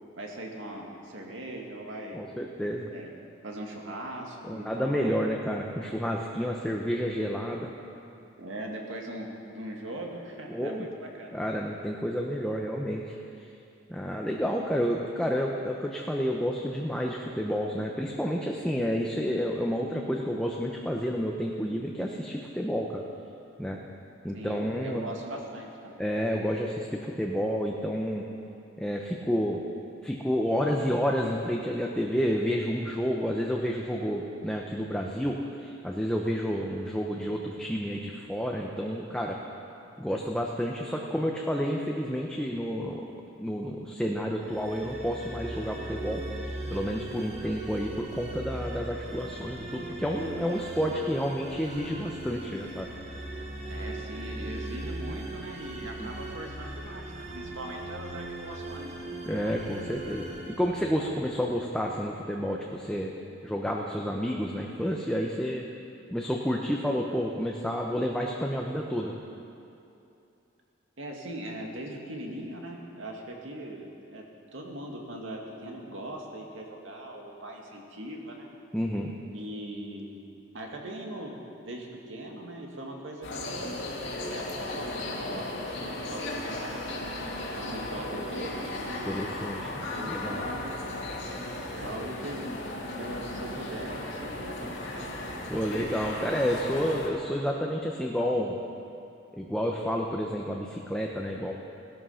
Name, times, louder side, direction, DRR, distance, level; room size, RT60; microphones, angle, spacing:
voice 1, 0.2-2.2 2.9-3.1 3.4-5.1 8.4-11.4 24.3-26.0 53.7-59.1 71.0-74.3 74.5-78.5 79.3-80.2 80.5-81.4 81.6-83.7 84.3-87.0 87.5-89.2 89.9-90.9 91.7-92.5 93.0-95.2, right 1 dB, 70° right, 0 dB, 2.2 m, -40 dB
voice 2, 2.1-2.9 4.5-7.7 10.5-10.8 11.3-13.1 13.9-23.0 23.6-23.8 24.2-25.0 26.0-28.2 28.8-29.6 30.0-39.4 40.0-43.1 43.4-52.9 56.0-56.1 59.3-63.1 63.4-65.7 66.1-69.1 78.7-79.1 89.1-90.4 95.5-98.6 99.4-101.5, equal, 5° left, -1 dB, 0.8 m, -30 dB
sound 1, 44.4-61.6, right 2 dB, 35° right, 1.7 m, -39 dB
sound 2, 83.2-97.1, left 1 dB, 65° left, 2.3 m, -36 dB
17.5 x 13.0 x 5.7 m, 2.7 s
head